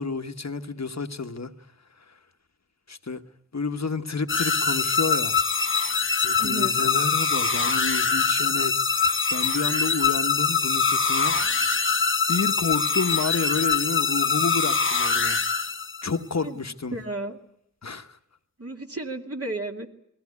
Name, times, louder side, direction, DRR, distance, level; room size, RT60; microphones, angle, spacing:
voice 1, 0.0-1.5 2.9-3.2 3.5-5.4 6.2-11.4 12.3-15.7 16.0-16.9 17.8-18.2, left 4 dB, 60° left, 1.2 m, -30 dB
sound 1, 4.3-16.2, left 5 dB, 40° left, 0.9 m, -23 dB
voice 2, 6.4-6.7 16.4-16.6 16.9-17.4 18.6-19.9, right 2 dB, 50° right, 2.5 m, -33 dB
21.0 x 17.0 x 9.5 m
wide cardioid pair, 70°, 32 cm